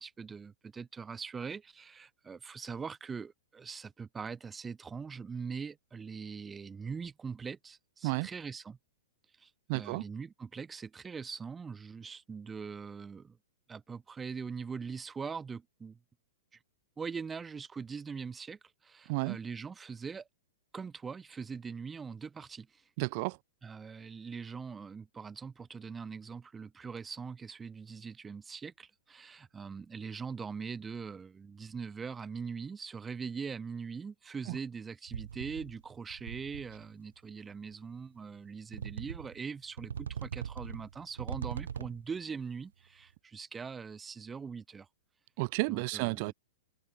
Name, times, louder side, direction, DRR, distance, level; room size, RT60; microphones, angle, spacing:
voice 1, 0.0-8.8 9.4-13.4 13.7-16.0 17.0-20.3 20.7-22.8 23.6-44.9 45.7-46.3, right 5 dB, 15° right, 7.1 m, -42 dB
voice 2, 9.7-10.0 19.1-19.4 23.0-23.4 34.5-34.6 45.4-46.3, right 29 dB, 45° right, 1.4 m, -32 dB
sound 1, 35.1-35.8 36.1-36.9 37.7-37.8 38.7-39.4 39.8-42.1, right 8 dB, 75° right, 3.2 m, -41 dB
hypercardioid pair, 110°, 0 cm